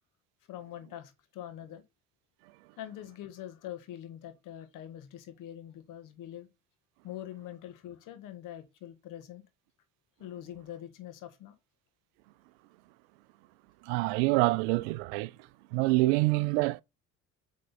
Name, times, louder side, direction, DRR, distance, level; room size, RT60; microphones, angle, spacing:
voice 1, 0.5-1.8 2.8-6.5 7.0-9.4 10.2-11.5, left 11 dB, 65° left, 1.6 m, -44 dB
voice 2, 13.8-15.3 15.7-16.8, right 21 dB, 75° right, 0.5 m, -26 dB
7.9 x 3.7 x 4.0 m
hypercardioid pair, 60°, 35 cm